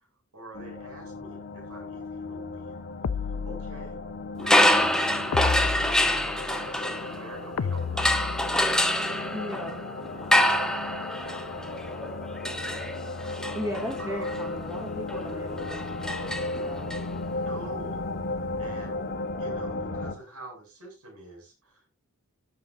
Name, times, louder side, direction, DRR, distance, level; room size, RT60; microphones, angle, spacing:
voice 1, 0.3-2.8 3.2-4.0 4.4-8.0 10.4-10.7 14.0-14.3 17.4-18.0 18.6-19.0 19.4-21.9, right 2 dB, 75° right, 1 dB, 7.9 m, -45 dB
sound 1, 0.5-20.1, left 2 dB, 50° left, 2.1 m, -35 dB
sound 2, 3.0-4.1 5.3-6.6 7.6-8.8, left 5 dB, 85° left, 0.5 m, -32 dB
sound 3, 4.4-7.5 8.0-17.0, left 1 dB, 5° left, 1.1 m, -26 dB
voice 2, 9.3-9.9 13.5-17.0, equal, 15° right, 1 dB, 2.9 m, -37 dB
17.0 x 8.2 x 2.7 m, 0.27 s
head